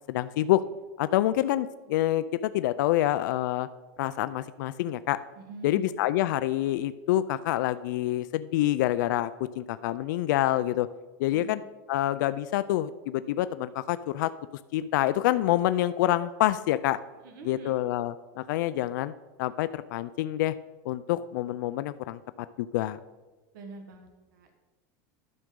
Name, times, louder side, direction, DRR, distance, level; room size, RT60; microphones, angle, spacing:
voice 1, 0.1-0.6 1.0-3.7 4.0-5.2 5.6-9.3 9.6-10.9 11.2-11.6 11.9-14.3 14.7-17.0 17.4-19.1 19.4-20.5 20.9-22.2 22.6-23.0, left 14 dB, 80° left, 14 dB, 0.3 m, -27 dB
voice 2, 5.4-5.9 11.3-11.5 17.2-17.8 23.5-24.5, right 4 dB, 85° right, 5 dB, 1.3 m, -44 dB
12.0 x 6.2 x 3.7 m, 1.2 s
supercardioid pair, 175°, 10 cm